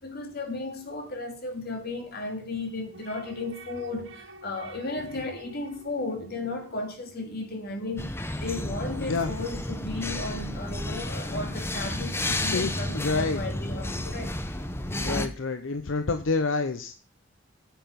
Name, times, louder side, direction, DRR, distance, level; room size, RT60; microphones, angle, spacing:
voice 1, 0.0-8.1 8.4-14.4, left 2 dB, 55° left, 2.7 m, -34 dB
sound 1, 2.9-7.6 8.0-10.8, equal, 70° right, 1.2 m, -49 dB
sound 2, 8.0-15.3, left 1 dB, 15° left, 0.9 m, -32 dB
voice 2, 9.0-9.3 10.9-11.4 12.5-13.4 14.8-16.9, left 3 dB, 80° left, 0.8 m, -29 dB
9.0 x 8.0 x 5.2 m
head